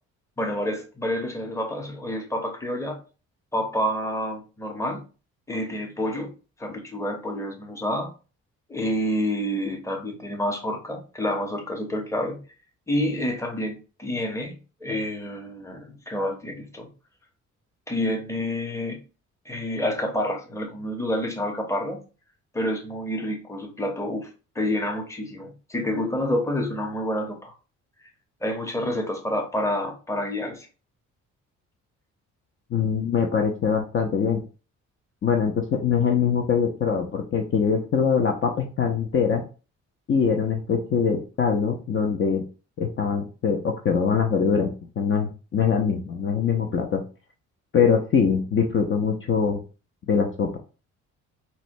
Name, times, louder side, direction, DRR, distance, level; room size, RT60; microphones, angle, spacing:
voice 1, 0.4-3.0 3.5-5.0 5.5-6.3 6.6-8.1 8.7-12.4 12.9-14.5 14.8-16.9 17.9-19.0 19.5-22.0 22.5-24.3 24.5-27.5 28.4-30.7, left 1 dB, 10° left, 3 dB, 0.8 m, -28 dB
voice 2, 32.7-34.4 35.2-39.4 40.1-42.5 42.8-47.0 47.7-49.6 50.1-50.6, left 6 dB, 40° left, 3 dB, 0.5 m, -23 dB
4.2 x 2.2 x 2.6 m, 0.34 s
cardioid pair, 90°, 30 cm